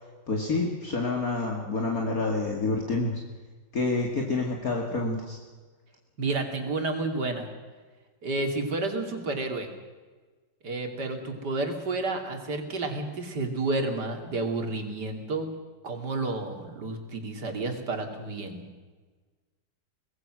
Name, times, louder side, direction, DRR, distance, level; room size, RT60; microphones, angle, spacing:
voice 1, 0.3-3.1 3.7-5.4, left 3 dB, 50° left, 1 dB, 2.7 m, -28 dB
voice 2, 6.2-7.5 8.2-9.7 10.6-15.5 15.8-18.6, right 2 dB, 65° right, 5 dB, 3.2 m, -30 dB
23.5 x 19.5 x 6.2 m, 1.4 s
omnidirectional pair, 1.9 m